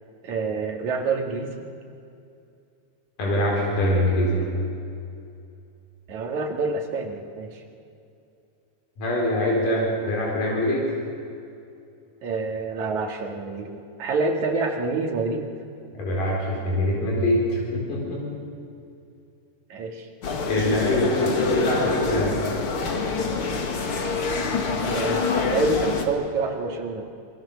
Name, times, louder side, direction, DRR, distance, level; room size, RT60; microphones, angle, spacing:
voice 1, 0.2-1.7 6.1-7.6 12.2-15.5 19.7-20.1 24.8-27.1, right 3 dB, 65° right, 2 dB, 3.4 m, -27 dB
voice 2, 3.2-4.4 9.0-10.8 15.9-18.4 20.5-22.4, left 1 dB, 80° left, -3 dB, 6.2 m, -23 dB
sound 1, 20.2-26.1, left 4 dB, 45° left, 2.4 m, -26 dB
26.5 x 23.0 x 7.0 m, 2.5 s
omnidirectional pair, 3.7 m